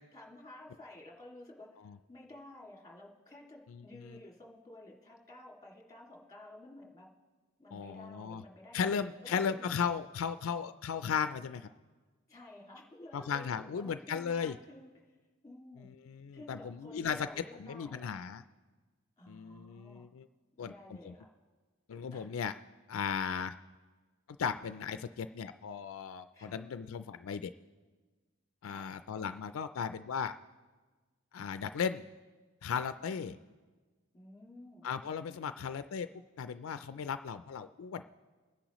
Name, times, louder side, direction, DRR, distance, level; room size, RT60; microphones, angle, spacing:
voice 1, 0.1-1.8 2.1-7.1 7.6-9.5 12.3-15.2 15.4-15.9 16.3-18.1 19.2-20.1 20.5-21.3 22.1-22.3 26.3-26.6 28.6-28.9 33.1-33.3 34.1-34.9, left 1 dB, 15° left, -2 dB, 2.1 m, -52 dB
voice 2, 3.7-4.2 7.7-8.4 8.7-11.7 13.1-14.6 15.8-17.3 17.6-18.4 19.3-20.3 20.6-20.7 21.0-21.1 21.9-22.5 22.9-23.5 24.4-27.5 28.6-30.4 31.3-32.0 32.6-33.4 34.8-36.1 36.4-38.0, left 6 dB, 75° left, 11 dB, 0.4 m, -36 dB
24.0 x 10.0 x 3.0 m, 1.4 s
head